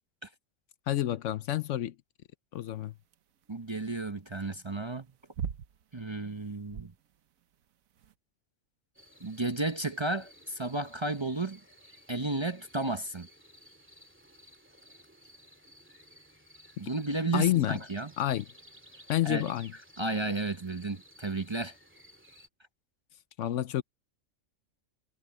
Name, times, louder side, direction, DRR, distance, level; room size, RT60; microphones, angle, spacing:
voice 1, 0.9-1.9 2.5-2.9 17.3-17.8 18.2-18.4 19.1-19.7 23.4-23.8, left 13 dB, 70° left, 0.9 m, -28 dB
sound 1, 2.6-8.1, right 7 dB, 80° right, 1.3 m, -42 dB
voice 2, 3.5-5.1 5.9-6.9 9.2-11.6 12.1-13.3 16.8-18.1 19.2-19.5 20.0-21.8, right 2 dB, 25° right, 0.7 m, -33 dB
sound 2, 9.0-22.5, equal, 10° right, 2.2 m, -56 dB
omnidirectional pair, 1.4 m